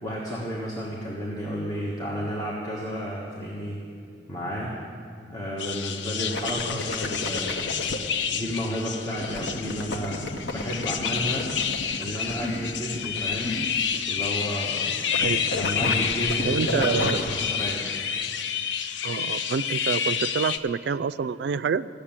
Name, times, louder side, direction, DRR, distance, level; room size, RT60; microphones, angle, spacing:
voice 1, 0.0-3.8 4.3-4.7 5.3-7.7 8.3-10.2 10.5-11.5 12.0-13.5 14.1-15.0 15.5-17.9, equal, 20° left, -5 dB, 1.4 m, -32 dB
Mallet percussion, 1.4-5.1, left 2 dB, 20° right, 2.3 m, -53 dB
sound 1, 5.6-20.6, left 7 dB, 85° left, 0.5 m, -29 dB
sound 2, 6.3-8.0 9.2-14.3 14.5-14.9 15.1-17.3, left 2 dB, 65° left, 0.9 m, -32 dB
voice 2, 15.2-15.6 16.4-17.2 19.0-21.9, right 6 dB, 65° right, 14 dB, 0.3 m, -27 dB
15.5 x 6.7 x 8.8 m, 2.3 s
head